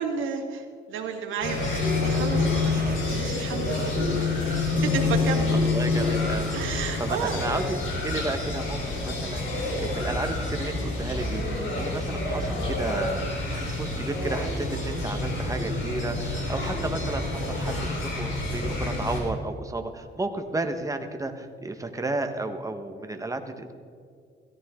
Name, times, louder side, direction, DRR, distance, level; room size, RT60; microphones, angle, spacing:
voice 1, 0.0-5.6 6.5-7.4, right 6 dB, 80° right, 2 dB, 2.0 m, -32 dB
sound 1, 1.4-19.2, left 3 dB, 75° left, 4.4 m, -27 dB
voice 2, 5.5-23.7, right 2 dB, 15° right, 6 dB, 1.5 m, -33 dB
17.0 x 14.0 x 3.9 m, 2.2 s
cardioid pair, 90°, 20 cm